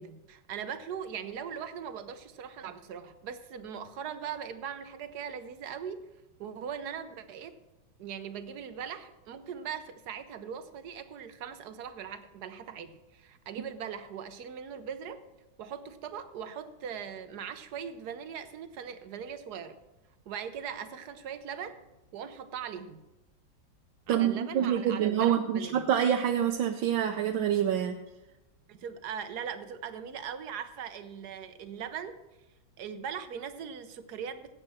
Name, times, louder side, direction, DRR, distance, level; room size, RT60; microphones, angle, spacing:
voice 1, 0.0-6.1 6.4-7.6 8.0-15.2 15.6-19.8 20.3-21.8 22.1-23.0 24.1-25.8 28.7-32.2 32.8-34.5, right 7 dB, 60° right, 10 dB, 1.2 m, -40 dB
voice 2, 24.1-28.0, right 9 dB, 75° right, 3 dB, 1.5 m, -26 dB
16.0 x 8.6 x 4.3 m, 0.99 s
omnidirectional pair, 2.2 m